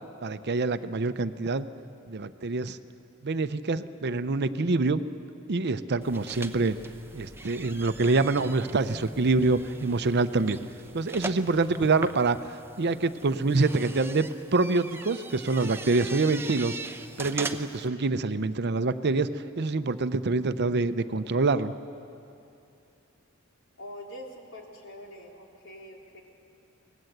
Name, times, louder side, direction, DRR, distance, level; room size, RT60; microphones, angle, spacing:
voice 1, 0.2-1.7 2.1-2.8 3.2-5.0 5.5-6.8 7.1-10.6 10.9-12.4 12.8-14.3 14.5-16.8 17.2-19.3 19.6-21.7, right 3 dB, 55° right, 12 dB, 0.7 m, -26 dB
Door Hum and Whine, 6.0-17.9, right 3 dB, 10° right, 0.8 m, -41 dB
voice 2, 23.8-26.2, equal, 65° left, 0 dB, 3.4 m, -44 dB
25.0 x 19.5 x 8.0 m, 2.6 s
head